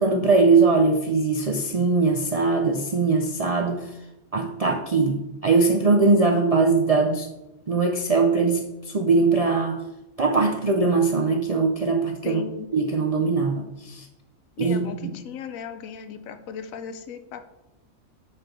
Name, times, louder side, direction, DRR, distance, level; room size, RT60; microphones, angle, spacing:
voice 1, 0.0-4.0 4.3-7.3 7.7-9.8 10.2-12.5 12.7-14.1 14.6-15.1, right 4 dB, 60° right, 3 dB, 0.4 m, -21 dB
voice 2, 12.2-12.7 14.6-17.4, left 7 dB, 85° left, 9 dB, 1.1 m, -36 dB
7.7 x 4.4 x 4.5 m, 0.96 s
omnidirectional pair, 1.4 m